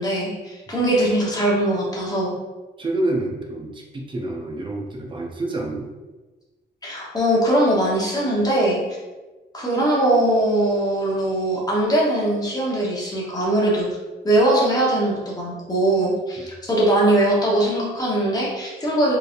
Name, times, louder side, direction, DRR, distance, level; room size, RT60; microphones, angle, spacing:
voice 1, 0.0-2.3 6.8-8.8 9.5-13.9 14.2-19.2, right 1 dB, 20° left, -4 dB, 1.0 m, -21 dB
voice 2, 2.8-5.9 16.4-16.5, right 2 dB, 25° right, -1 dB, 0.7 m, -28 dB
4.6 x 3.3 x 2.5 m, 1.2 s
wide cardioid pair, 160°, 19 cm